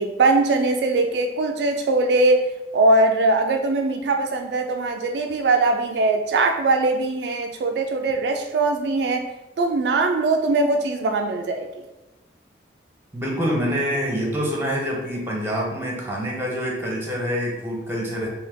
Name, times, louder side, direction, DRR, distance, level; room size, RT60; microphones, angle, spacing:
voice 1, 0.0-2.4 2.7-9.3 9.6-11.7, right 2 dB, 65° right, 4 dB, 0.3 m, -21 dB
voice 2, 13.1-18.3, equal, 10° right, -2 dB, 0.8 m, -26 dB
3.6 x 2.8 x 3.5 m, 1.0 s
head